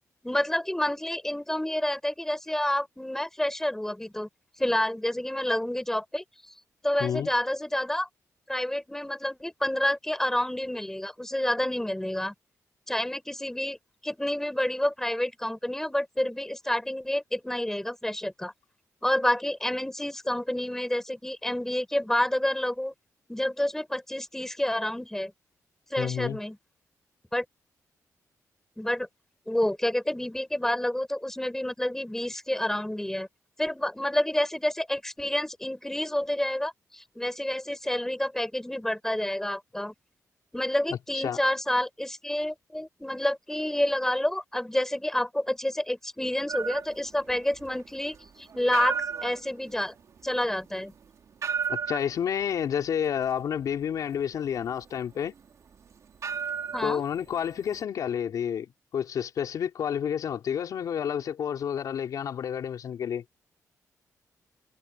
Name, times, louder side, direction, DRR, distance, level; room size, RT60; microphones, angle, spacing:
voice 1, 0.2-4.3 4.6-6.2 6.8-8.1 8.5-12.3 12.9-13.8 14.0-18.5 19.0-22.9 23.3-25.3 25.9-26.6 27.3-27.4 28.8-29.1 29.5-33.3 33.6-39.9 40.5-49.9 50.2-50.9 56.7-57.0, left 1 dB, 5° left, 4.4 m, -29 dB
voice 2, 7.0-7.3 26.0-26.4 40.9-41.4 51.7-55.3 56.8-58.7 58.9-63.2, left 8 dB, 75° left, 4.3 m, -30 dB
sound 1, 46.5-57.8, right 7 dB, 60° right, 3.5 m, -36 dB
cardioid pair, 90°, 6 cm